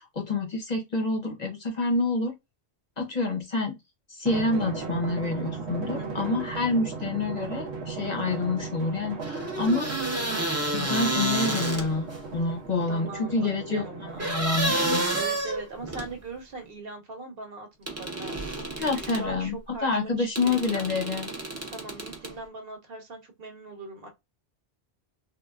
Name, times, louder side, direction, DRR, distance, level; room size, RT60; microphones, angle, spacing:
voice 1, 0.0-2.4 3.0-3.8 4.1-9.9 10.7-12.1 12.3-13.8 14.2-15.2 18.8-19.6 19.8-21.3, left 3 dB, 45° left, 0.8 m, -27 dB
Drum, 4.2-15.2, right 4 dB, 90° right, 1.0 m, -37 dB
voice 2, 5.9-6.3 12.9-14.3 15.1-20.9 21.6-24.1, right 3 dB, 65° right, 1.1 m, -41 dB
sound 1, 9.2-12.2 14.2-16.1 17.9-19.3 20.4-22.3, right 2 dB, 20° right, 0.5 m, -30 dB
3.3 x 2.3 x 2.3 m
omnidirectional pair, 1.1 m